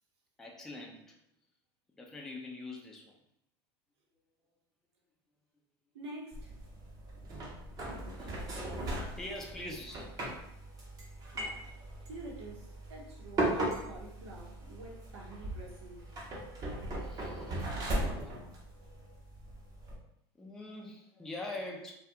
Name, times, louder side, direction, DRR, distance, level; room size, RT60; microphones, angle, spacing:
voice 1, 0.4-1.2 2.0-3.1 8.2-8.5 9.2-10.1 16.4-17.8 18.2-18.3 20.4-21.9, left 2 dB, 5° left, -1 dB, 0.3 m, -44 dB
voice 2, 5.9-6.5 11.3-11.7 12.0-16.0, right 2 dB, 90° right, -2 dB, 0.8 m, -48 dB
sound 1, 6.3-19.9, right 1 dB, 25° right, 0.7 m, -38 dB
2.3 x 2.2 x 2.7 m, 0.75 s
supercardioid pair, 130°, 14 cm